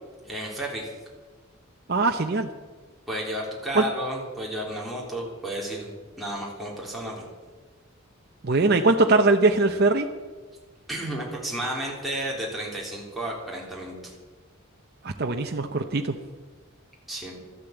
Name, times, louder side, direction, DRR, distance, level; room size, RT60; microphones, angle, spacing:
voice 1, 0.2-0.9 3.1-5.9 6.2-7.2 10.9-14.1 17.1-17.3, right 1 dB, ahead, -5 dB, 3.5 m, -32 dB
voice 2, 1.9-2.5 3.7-3.8 8.4-10.1 15.0-16.1, right 3 dB, 50° right, 4 dB, 0.8 m, -21 dB
13.5 x 12.0 x 8.0 m, 1.4 s
head